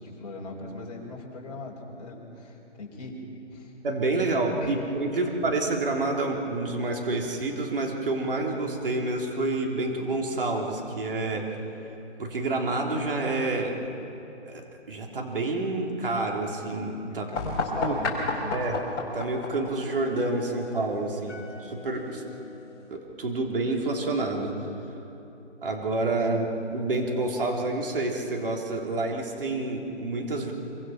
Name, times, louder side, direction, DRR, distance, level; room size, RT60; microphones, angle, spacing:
voice 1, 0.0-3.2 3.5-3.7 4.2-4.3 4.6-4.8 5.1-5.3 17.1-18.6 26.3-26.4, left 2 dB, 35° left, -2 dB, 4.5 m, -39 dB
voice 2, 3.8-11.6 12.2-13.7 14.5-14.6 14.9-17.3 17.8-17.9 18.5-18.8 19.1-22.2 22.9-24.5 25.6-30.5, right 2 dB, 50° right, 1 dB, 3.5 m, -28 dB
sound 1, 17.3-22.9, left 3 dB, 20° left, 3.4 m, -34 dB
26.0 x 24.5 x 5.8 m, 3.0 s
hypercardioid pair, 165°, 36 cm